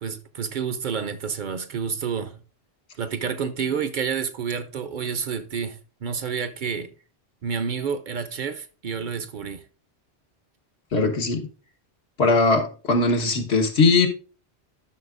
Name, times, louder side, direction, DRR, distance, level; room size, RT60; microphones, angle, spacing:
voice 1, 0.0-2.4 3.0-6.9 7.4-9.6, right 6 dB, 55° right, 0.6 m, -29 dB
voice 2, 10.9-11.5 12.2-14.1, left 3 dB, 85° left, 1.5 m, -20 dB
11.0 x 5.9 x 2.5 m
omnidirectional pair, 1.1 m